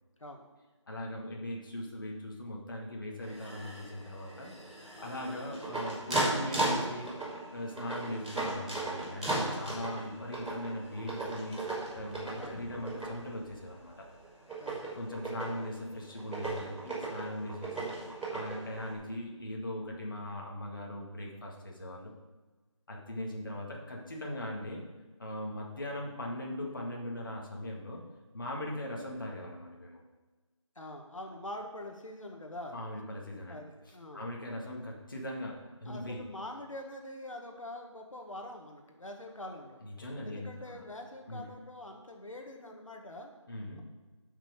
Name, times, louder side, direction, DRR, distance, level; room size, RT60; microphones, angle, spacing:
voice 1, 0.9-4.5 4.8-7.1 7.5-14.0 14.9-22.1 22.9-24.9 25.2-28.0 28.3-30.0 32.7-33.6 33.9-36.2 39.8-40.8 41.3-41.4 43.5-43.8, left 1 dB, 40° left, -2 dB, 1.9 m, -40 dB
sound 1, 3.2-18.9, right 2 dB, ahead, 1.7 m, -37 dB
voice 2, 14.6-14.9 28.6-28.8 30.8-32.8 33.5-34.3 35.9-39.8 40.3-43.3 43.7-43.8, left 1 dB, 85° left, 2 dB, 1.8 m, -44 dB
8.6 x 6.0 x 6.5 m, 1.3 s
figure-of-eight pair, 175°, 16 cm